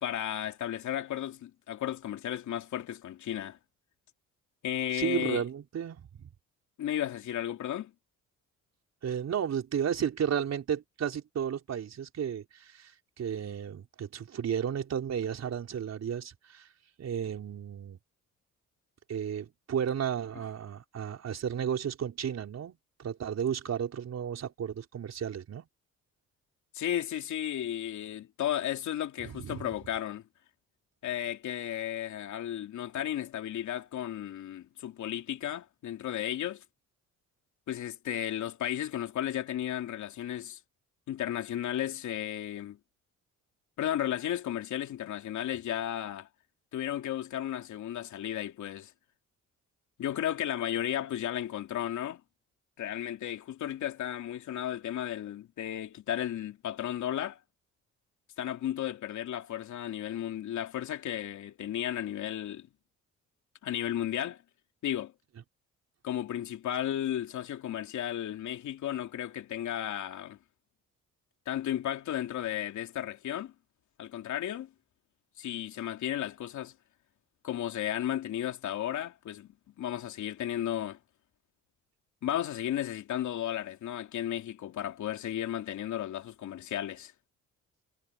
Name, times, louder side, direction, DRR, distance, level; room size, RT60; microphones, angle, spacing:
voice 1, 0.0-3.6 4.6-5.4 6.8-7.9 26.7-30.2 31.0-36.6 37.7-40.6 41.1-42.8 43.8-46.3 46.7-48.9 50.0-52.2 52.8-57.4 58.4-62.7 63.6-64.4 64.8-65.1 66.0-70.4 71.5-73.5 74.0-74.7 75.4-76.7 77.4-79.5 79.8-81.0 82.2-87.1, left 11 dB, 70° left, 2.9 m, -34 dB
voice 2, 4.9-6.3 9.0-12.9 13.2-16.7 17.0-18.0 19.1-25.7 29.2-29.7, right 8 dB, 60° right, 4.7 m, -33 dB
cardioid pair, 90°, 30 cm